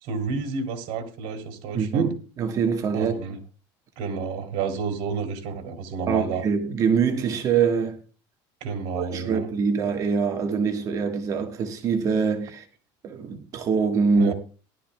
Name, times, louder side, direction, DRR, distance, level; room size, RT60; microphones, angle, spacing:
voice 1, 0.0-2.1 2.9-3.4 4.0-6.4 8.6-9.5 14.1-14.3, right 5 dB, 60° right, 3.1 m, -30 dB
voice 2, 1.7-3.1 6.1-8.0 8.9-12.7 13.0-14.3, right 5 dB, 30° right, 1.4 m, -24 dB
19.0 x 12.0 x 2.2 m
cardioid pair, 170°, 10 cm